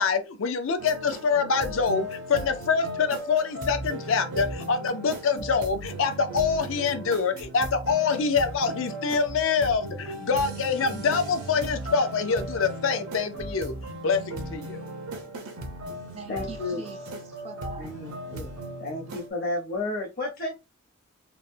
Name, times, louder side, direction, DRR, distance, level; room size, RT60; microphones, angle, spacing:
voice 1, 0.0-13.7 14.0-14.8, left 5 dB, 65° left, 0.5 m, -25 dB
sound 1, 0.8-19.3, right 1 dB, 90° right, 0.7 m, -37 dB
voice 2, 15.5-18.8, right 5 dB, 30° right, 0.3 m, -45 dB
voice 3, 16.3-16.9 17.8-18.5 18.8-20.5, left 2 dB, 45° left, 0.8 m, -32 dB
3.0 x 2.1 x 2.6 m
head